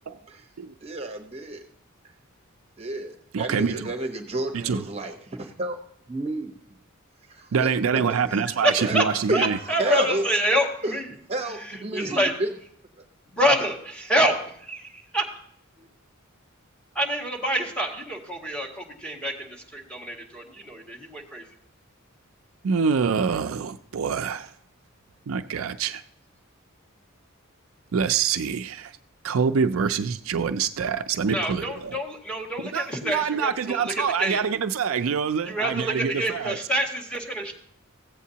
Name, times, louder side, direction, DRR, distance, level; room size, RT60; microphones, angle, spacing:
voice 1, 0.8-1.7 2.8-5.8 6.1-6.5 7.3-7.7 8.1-8.2 8.6-9.0 9.3-10.2 10.8-11.0 11.3-12.5, right 2 dB, 30° right, 1.0 m, -30 dB
voice 2, 3.3-3.8 4.5-4.8 7.5-9.6 22.6-24.5 25.3-26.0 27.9-28.9 29.2-32.0 32.7-36.6, right 6 dB, 70° right, 0.4 m, -25 dB
voice 3, 8.5-9.0 9.3-11.1 11.7-12.3 13.3-15.3 17.0-21.4 31.3-34.4 35.4-37.5, equal, 5° left, 1.9 m, -27 dB
16.0 x 8.2 x 2.8 m
head